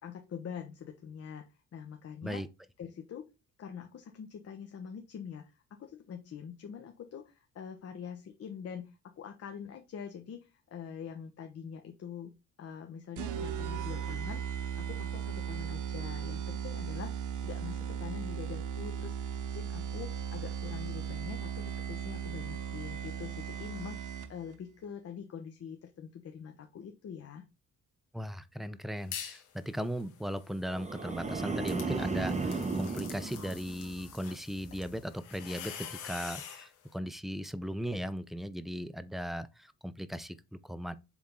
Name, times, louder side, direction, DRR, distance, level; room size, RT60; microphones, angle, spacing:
voice 1, 0.0-2.4 2.8-3.3 3.6-12.3 12.6-27.4, left 7 dB, 50° left, 1.1 m, -44 dB
sound 1, 13.2-24.5, right 8 dB, 80° right, 0.9 m, -37 dB
voice 2, 28.1-40.9, equal, ahead, 0.6 m, -38 dB
sound 2, 29.0-29.5 29.9-36.7, left 8 dB, 90° left, 1.9 m, -46 dB
sound 3, 30.7-34.1 34.5-34.9, right 4 dB, 25° right, 1.2 m, -35 dB
7.2 x 3.7 x 3.7 m
cardioid pair, 90°, 30 cm